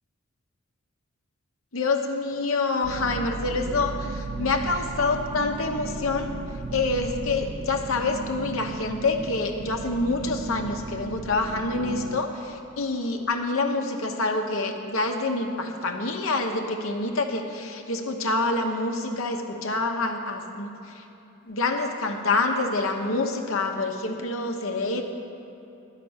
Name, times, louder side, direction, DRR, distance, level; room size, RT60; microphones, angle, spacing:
voice 1, 1.7-6.3 6.7-21.0 21.5-25.0, left 3 dB, 75° left, 4 dB, 1.0 m, -27 dB
sound 1, 2.8-12.2, right 4 dB, 40° right, 0.4 m, -35 dB
11.0 x 5.9 x 7.9 m, 3.0 s
head